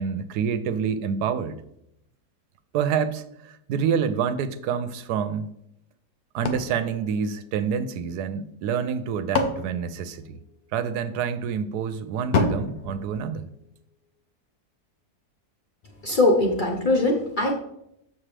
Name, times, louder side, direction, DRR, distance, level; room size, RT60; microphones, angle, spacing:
voice 1, 0.0-1.6 2.7-5.5 6.3-10.4 10.7-13.5, right 7 dB, 80° right, 12 dB, 1.1 m, -27 dB
sound 1, 6.4-8.0 8.8-10.8 12.3-13.9, left 3 dB, 75° left, 1.3 m, -30 dB
voice 2, 16.0-17.6, left 2 dB, 40° left, 0 dB, 0.7 m, -21 dB
7.3 x 6.2 x 3.3 m, 0.78 s
omnidirectional pair, 1.7 m